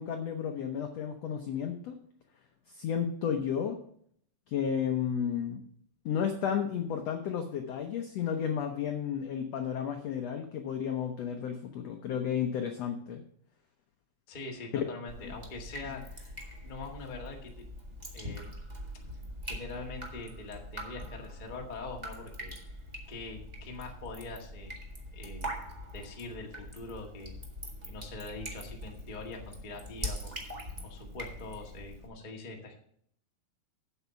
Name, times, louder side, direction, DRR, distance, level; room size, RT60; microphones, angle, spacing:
voice 1, 0.0-1.9 2.7-3.8 4.5-5.6 6.0-13.2 15.2-15.3, left 8 dB, 80° left, 4 dB, 1.5 m, -32 dB
voice 2, 14.3-16.3 16.6-17.5 18.1-18.5 19.4-22.5 23.1-24.7 25.1-25.6 25.9-27.4 27.9-30.5 30.8-32.7, left 3 dB, 40° left, 0 dB, 0.6 m, -43 dB
Drip, 15.1-32.1, equal, 30° right, 0.8 m, -43 dB
8.3 x 8.0 x 5.7 m, 0.65 s
omnidirectional pair, 4.1 m